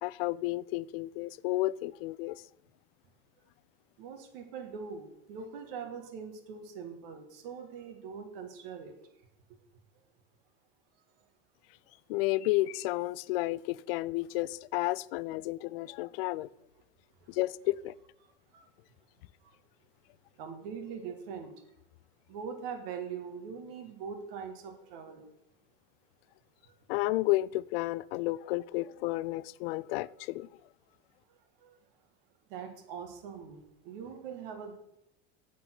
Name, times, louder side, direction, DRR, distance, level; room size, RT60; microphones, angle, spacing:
voice 1, 0.0-2.4 12.1-16.5 17.3-17.9 26.9-30.5, left 18 dB, 75° left, 0.4 m, -32 dB
voice 2, 4.0-8.9 17.2-17.7 18.2-18.7 19.4-19.6 20.4-21.5 22.3-25.3 26.6-26.7 31.3-31.8 32.5-34.8, right 6 dB, 65° right, 1.8 m, -42 dB
8.0 x 7.3 x 5.9 m
cardioid pair, 170°, 29 cm